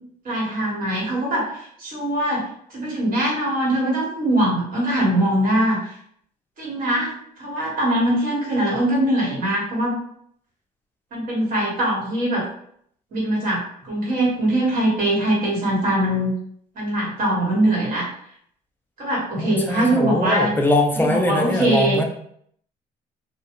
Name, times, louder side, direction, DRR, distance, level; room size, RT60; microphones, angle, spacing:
voice 1, 0.2-5.9 6.6-10.0 11.1-12.4 13.1-16.3 16.7-18.1 19.0-20.5 20.9-22.0, right 1 dB, 55° right, -4 dB, 1.4 m, -22 dB
voice 2, 19.4-22.0, left 2 dB, 10° left, 3 dB, 0.4 m, -22 dB
2.3 x 2.2 x 2.9 m, 0.65 s
cardioid pair, 110°, 17 cm